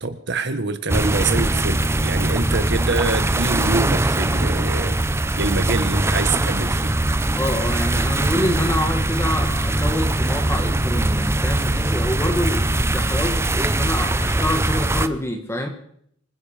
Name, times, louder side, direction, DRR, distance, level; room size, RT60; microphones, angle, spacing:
voice 1, 0.0-5.0 5.4-6.9, right 3 dB, 55° right, 10 dB, 1.6 m, -25 dB
sound 1, 0.9-15.1, right 1 dB, 10° right, 0.6 m, -21 dB
voice 2, 7.3-15.7, equal, 10° left, 4 dB, 1.8 m, -26 dB
25.5 x 11.0 x 5.2 m, 0.66 s
head